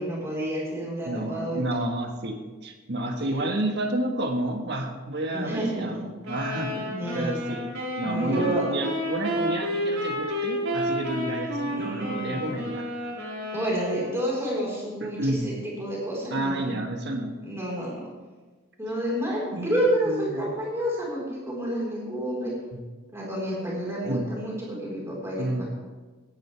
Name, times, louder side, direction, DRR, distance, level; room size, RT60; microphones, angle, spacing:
voice 1, 0.0-1.6 5.3-6.0 6.7-7.4 8.0-8.7 11.7-12.5 13.5-16.8 17.4-18.0 18.8-22.5 23.1-25.6, right 1 dB, 15° right, -5 dB, 4.4 m, -29 dB
voice 2, 1.0-6.8 7.1-7.7 8.0-12.9 15.0-15.5 16.3-17.4 19.5-19.7 20.0-20.5 22.7-22.8 24.0-24.3 25.4-25.6, right 1 dB, 55° right, 3 dB, 1.5 m, -30 dB
sound 1, 6.2-14.2, equal, 85° right, 4.8 m, -31 dB
17.5 x 10.5 x 3.4 m, 1.3 s
head